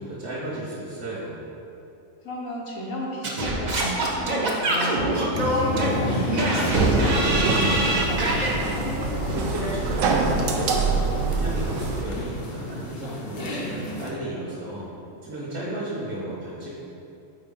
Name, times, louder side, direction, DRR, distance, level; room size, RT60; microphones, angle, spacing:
voice 1, 0.0-1.5 9.3-14.9 15.2-16.7, right 1 dB, 60° right, -7 dB, 1.3 m, -34 dB
voice 2, 2.2-8.2, equal, 75° left, -3 dB, 1.3 m, -34 dB
Singing / Scratching (performance technique), 3.2-8.6, right 1 dB, 40° right, 0.7 m, -25 dB
sound 1, 5.3-14.1, left 1 dB, 50° left, 0.8 m, -30 dB
sound 2, 6.7-12.0, right 4 dB, 80° right, 1.0 m, -25 dB
4.5 x 4.2 x 5.4 m, 2.7 s
omnidirectional pair, 1.4 m